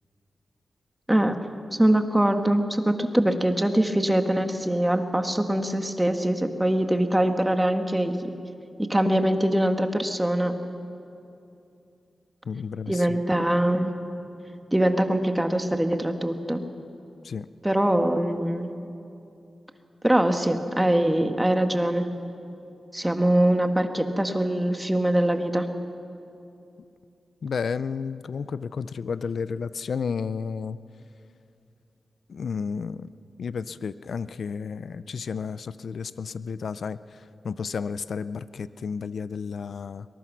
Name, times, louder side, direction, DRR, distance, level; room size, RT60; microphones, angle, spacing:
voice 1, 1.7-8.3 8.8-10.5 12.9-13.9 14.7-16.6 17.6-18.7 20.0-22.1 22.9-25.7, right 1 dB, 10° right, 6 dB, 1.6 m, -23 dB
voice 2, 12.4-13.2 17.2-17.5 27.4-30.8 32.3-33.1 33.4-40.1, left 5 dB, 75° left, 15 dB, 0.5 m, -32 dB
23.0 x 20.5 x 6.2 m, 2.7 s
cardioid pair, 60°, 0 cm